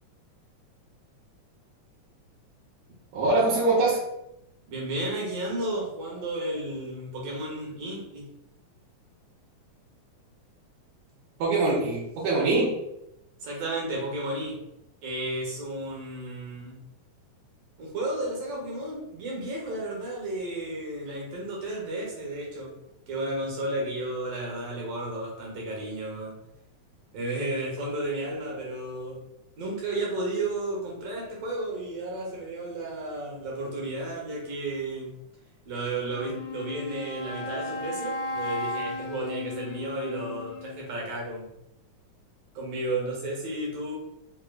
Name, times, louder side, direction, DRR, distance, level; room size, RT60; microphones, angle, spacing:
voice 1, 3.1-4.0 11.4-12.7, right 2 dB, 80° right, -7 dB, 2.3 m, -23 dB
voice 2, 4.7-8.3 13.4-14.6 15.0-16.8 17.8-22.7 23.1-26.4 27.1-29.2 29.6-35.1 35.7-41.5 42.6-43.9, right 2 dB, 60° right, -2 dB, 1.9 m, -33 dB
Wind instrument woodwind instrument, 36.1-41.0, left 2 dB, 80° left, 1.9 m, -35 dB
5.0 x 2.9 x 2.3 m, 0.83 s
omnidirectional pair, 3.5 m